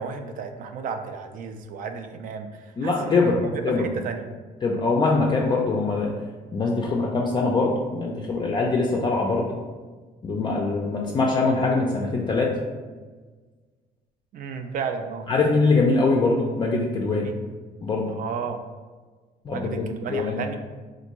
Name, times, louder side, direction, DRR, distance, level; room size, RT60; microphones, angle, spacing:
voice 1, 0.0-4.3 14.3-15.3 17.2-17.3 18.1-18.6 19.5-20.6, right 6 dB, 55° right, 7 dB, 0.4 m, -33 dB
voice 2, 2.8-3.8 4.6-6.1 6.5-9.5 10.2-12.5 15.3-17.3 17.8-18.1 19.5-20.4, left 3 dB, 25° left, -2 dB, 0.4 m, -23 dB
3.4 x 2.5 x 2.9 m, 1.4 s
cardioid pair, 110°, 17 cm